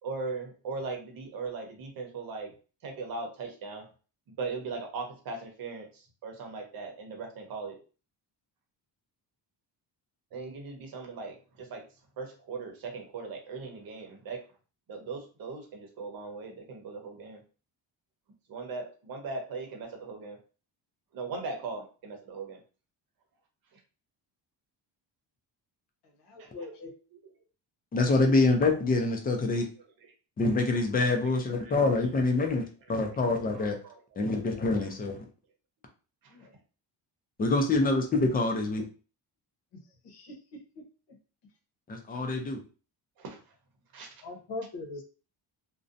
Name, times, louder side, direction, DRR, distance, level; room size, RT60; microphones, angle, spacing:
voice 1, 0.0-2.5 2.8-3.9 4.3-7.8 10.3-11.9 12.2-14.4 14.9-17.4 18.5-20.4 21.1-22.6 23.7-23.8 26.4-26.5 27.1-27.2 30.0-30.1 31.1-31.2 31.6-31.7 32.4-32.5 33.1-33.2 33.5-34.4 34.8-34.9 36.2-36.5 43.2-43.4 43.9-44.1, right 4 dB, 55° right, 2 dB, 0.8 m, -39 dB
voice 2, 26.2-26.9 36.3-36.5 39.7-40.6 44.2-45.0, left 2 dB, 70° left, 1 dB, 0.9 m, -41 dB
voice 3, 27.9-29.7 30.4-33.8 34.2-35.2 37.4-38.8 41.9-42.6, left 3 dB, 25° left, 3 dB, 0.3 m, -26 dB
2.5 x 2.1 x 2.5 m, 0.36 s
cardioid pair, 160°, 43 cm